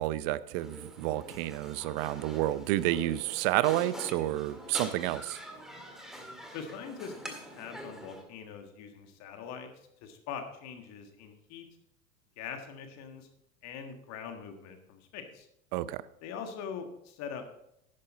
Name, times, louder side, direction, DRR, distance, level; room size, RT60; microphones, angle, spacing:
voice 1, 0.0-5.4 15.7-16.0, right 15 dB, 40° right, 17 dB, 0.6 m, -30 dB
sound 1, 0.5-8.2, equal, ahead, 1.8 m, -44 dB
voice 2, 6.5-9.7 10.0-11.7 12.4-13.3 13.6-15.5 16.2-17.5, left 6 dB, 40° left, 6 dB, 1.7 m, -42 dB
11.0 x 10.0 x 4.1 m, 0.77 s
figure-of-eight pair, 90°, 41 cm